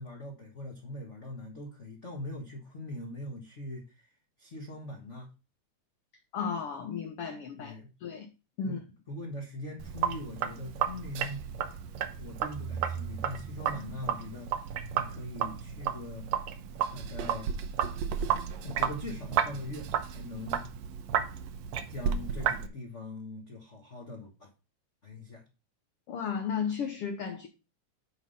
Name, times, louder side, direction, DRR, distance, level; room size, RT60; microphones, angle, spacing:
voice 1, 0.0-4.1 4.4-5.3 7.6-7.9 8.6-8.8 9.1-11.5 12.2-16.3 16.9-17.5 18.6-20.7 21.9-24.5 25.0-25.4, left 1 dB, 45° left, 0.9 m, -41 dB
voice 2, 6.3-7.7 8.0-8.3 8.6-8.8 26.1-27.5, left 6 dB, 65° left, 1.6 m, -34 dB
Sink (filling or washing), 9.8-22.7, right 8 dB, 70° right, 1.9 m, -33 dB
10.5 x 3.8 x 5.5 m
omnidirectional pair, 3.6 m